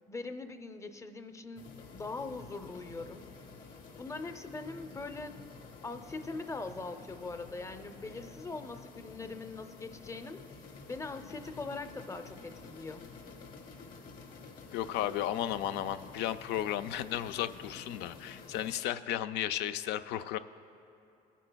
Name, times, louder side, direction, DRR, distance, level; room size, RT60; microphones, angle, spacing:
voice 1, 0.1-3.2 4.0-5.4 5.8-10.4 10.9-13.1, left 3 dB, 15° left, 9 dB, 0.5 m, -42 dB
sound 1, 1.6-18.8, left 4 dB, 55° left, 1.4 m, -50 dB
voice 2, 14.7-20.4, left 12 dB, 90° left, 11 dB, 0.4 m, -34 dB
26.0 x 9.0 x 2.2 m, 2.7 s
cardioid pair, 110°, 17 cm